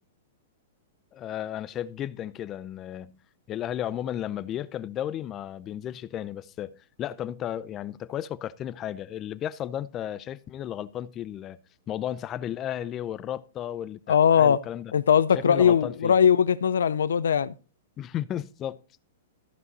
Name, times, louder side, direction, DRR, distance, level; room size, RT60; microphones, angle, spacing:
voice 1, 1.1-3.2 3.5-11.6 11.9-14.9 15.5-16.2 18.0-18.8, left 11 dB, 25° left, 0.5 m, -34 dB
voice 2, 14.1-14.6 14.9-17.5, left 8 dB, 90° left, 0.5 m, -20 dB
14.0 x 5.5 x 4.0 m
hypercardioid pair, 140°, 0 cm